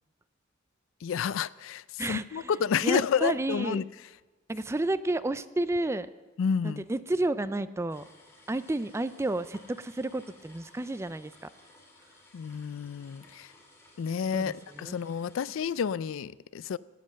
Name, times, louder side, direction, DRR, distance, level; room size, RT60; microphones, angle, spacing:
voice 1, 1.0-3.8 6.4-6.8 12.3-13.5 14.0-16.8, left 7 dB, 75° left, 0.4 m, -30 dB
voice 2, 2.0-2.5 2.8-3.8 4.5-6.1 6.6-8.0 8.5-11.3 14.3-15.0, right 2 dB, 15° right, 0.3 m, -31 dB
sound 1, 7.9-15.8, left 2 dB, 15° left, 2.4 m, -57 dB
17.5 x 7.8 x 6.4 m
head